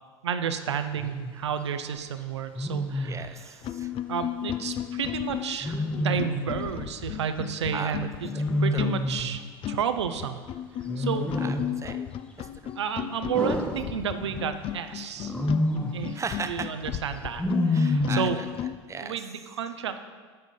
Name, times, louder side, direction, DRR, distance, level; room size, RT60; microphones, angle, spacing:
voice 1, 0.2-3.6 4.1-8.3 8.6-10.4 11.0-11.3 12.8-15.3 15.9-18.4 19.0-20.0, right 7 dB, 90° right, 9 dB, 0.6 m, -31 dB
Wild animals, 1.0-1.3 2.6-3.3 5.6-6.5 8.3-9.4 10.9-11.8 13.3-14.5 15.2-16.1 17.4-18.4, left 1 dB, 5° left, 0.9 m, -28 dB
voice 2, 3.0-3.9 7.7-8.0 8.3-8.4 8.7-8.9 11.4-12.1 12.4-12.7 16.1-16.7 17.7-18.5 18.9-19.2, right 5 dB, 20° right, 9 dB, 0.6 m, -36 dB
sound 1, 3.2-3.3 3.6-18.8, left 11 dB, 40° left, 0.4 m, -35 dB
7.5 x 6.0 x 5.4 m, 1.5 s
hypercardioid pair, 80°, 14 cm